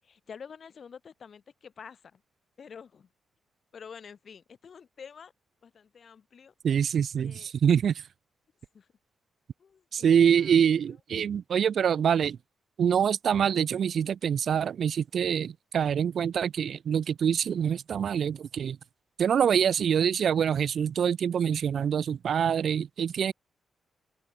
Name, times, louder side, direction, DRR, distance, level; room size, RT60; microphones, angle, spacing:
voice 1, 0.0-2.2 2.6-3.1 3.7-5.3 5.6-6.5 7.2-7.5 8.7-8.9 9.6-10.6, left 6 dB, 50° left, 7.6 m, -48 dB
voice 2, 6.6-7.9 9.9-12.4 12.8-18.8 19.2-23.3, right 8 dB, 60° right, 1.2 m, -25 dB
open air
cardioid pair, 125°, 0 cm